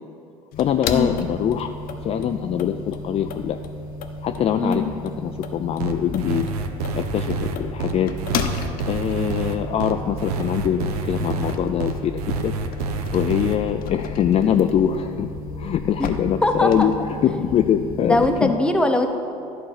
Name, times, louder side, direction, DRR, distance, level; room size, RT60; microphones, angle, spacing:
sound 1, 0.5-18.5, left 3 dB, 50° left, 0.7 m, -33 dB
voice 1, 0.6-1.7 2.0-3.6 4.2-6.5 6.9-8.1 8.8-12.5 13.1-15.3 15.6-16.9 17.2-18.5, left 9 dB, 30° left, 6 dB, 0.4 m, -23 dB
voice 2, 4.6-4.9 16.0-16.1 16.4-16.9 18.0-19.1, left 1 dB, 5° left, 5 dB, 0.8 m, -21 dB
sound 2, 5.8-13.6, right 4 dB, 75° right, 0.7 m, -28 dB
11.0 x 4.2 x 5.8 m, 2.6 s
hypercardioid pair, 75°, 20 cm